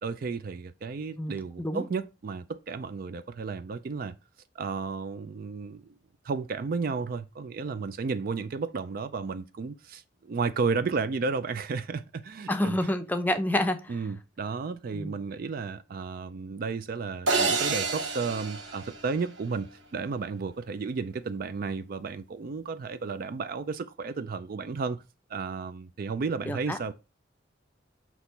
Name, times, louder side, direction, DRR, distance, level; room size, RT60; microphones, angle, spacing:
voice 1, 0.0-4.2 4.6-5.9 6.2-12.7 13.9-25.0 25.3-26.9, right 4 dB, 50° right, 0.4 m, -33 dB
voice 2, 1.2-1.8 12.5-13.9 14.9-15.2 26.5-26.8, left 1 dB, 10° left, 0.6 m, -28 dB
sound 1, 17.3-19.6, right 4 dB, 90° right, 1.2 m, -29 dB
6.0 x 3.0 x 5.6 m
head